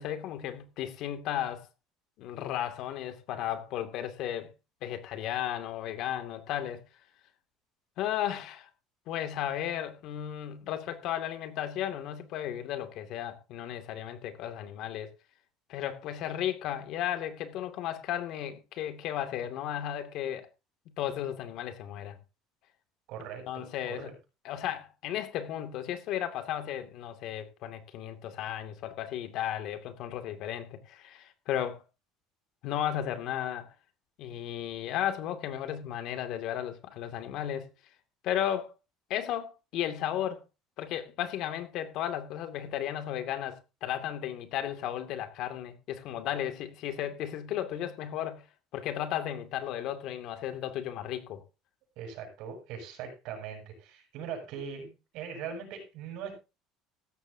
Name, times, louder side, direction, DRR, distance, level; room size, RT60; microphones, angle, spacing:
voice 1, 0.0-1.7 2.2-4.5 4.8-6.8 8.0-8.7 9.1-15.1 15.7-20.5 21.0-22.2 23.5-24.1 24.4-31.8 32.6-33.7 34.2-37.7 38.2-38.7 39.1-40.4 40.8-48.4 48.7-51.4, left 11 dB, 55° left, 2.5 m, -34 dB
voice 2, 23.1-24.1 52.0-56.3, right 7 dB, 60° right, 7.7 m, -41 dB
16.0 x 14.0 x 2.8 m
cardioid pair, 160°, 0 cm